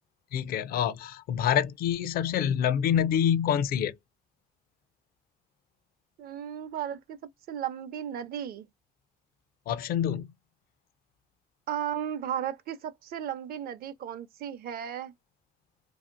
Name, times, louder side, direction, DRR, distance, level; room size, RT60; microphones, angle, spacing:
voice 1, 0.3-3.9 9.7-10.3, left 9 dB, 60° left, 0.5 m, -26 dB
voice 2, 6.2-7.2 7.5-8.7 11.7-15.1, right 9 dB, 60° right, 0.6 m, -35 dB
2.8 x 2.5 x 2.5 m
cardioid pair, 110°, 17 cm